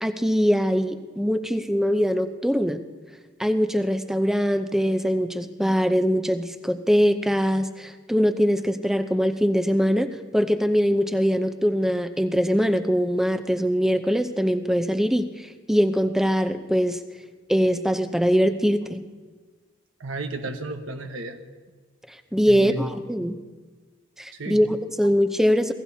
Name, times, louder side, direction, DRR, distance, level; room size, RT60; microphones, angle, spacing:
voice 1, 0.0-2.8 3.4-17.0 17.5-19.0 22.3-23.4 24.2-25.7, equal, ahead, 8 dB, 0.7 m, -22 dB
voice 2, 20.0-21.4 22.5-22.9 24.3-24.6, right 2 dB, 80° right, 5 dB, 1.2 m, -32 dB
27.0 x 17.5 x 2.8 m, 1.4 s
head